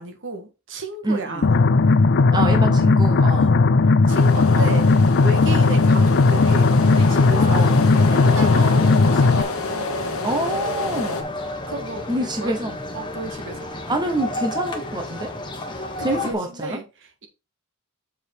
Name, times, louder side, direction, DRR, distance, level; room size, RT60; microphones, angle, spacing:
voice 1, 0.0-1.5 3.3-3.6 4.1-4.9 5.2-7.7 8.1-10.1 11.7-12.5 12.9-13.7 15.7-17.3, right 2 dB, 60° right, 1.7 m, -33 dB
voice 2, 1.0-1.4 2.3-3.6 4.5-4.8 7.5-7.8 8.6-8.7 10.2-11.4 12.1-12.8 13.9-15.3 16.0-16.8, right 1 dB, 20° right, 0.9 m, -26 dB
sound 1, 1.4-9.4, left 3 dB, 55° left, 0.5 m, -16 dB
sound 2, 4.1-11.2, left 3 dB, 70° left, 1.4 m, -29 dB
sound 3, 6.4-16.3, left 1 dB, 20° left, 1.4 m, -32 dB
7.3 x 4.9 x 4.5 m
head